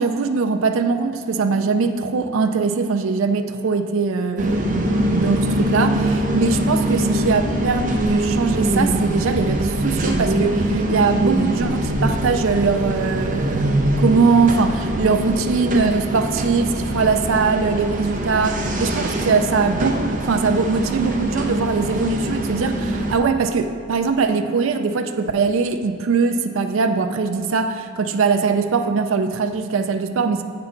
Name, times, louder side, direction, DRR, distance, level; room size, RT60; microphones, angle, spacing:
voice 1, 0.0-30.4, right 4 dB, 75° right, 7 dB, 0.4 m, -21 dB
sound 1, 4.4-23.2, right 1 dB, 40° right, 0.7 m, -23 dB
7.9 x 5.7 x 3.8 m, 2.4 s
head